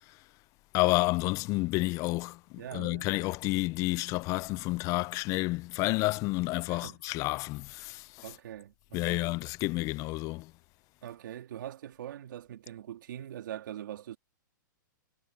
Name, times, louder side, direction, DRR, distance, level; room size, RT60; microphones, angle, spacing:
voice 1, 0.7-8.3 8.9-10.5, left 22 dB, 30° left, 0.4 m, -30 dB
voice 2, 2.6-3.1 6.7-7.0 8.2-9.3 11.0-14.2, right 11 dB, 70° right, 2.6 m, -42 dB
hypercardioid pair, 135°, 11 cm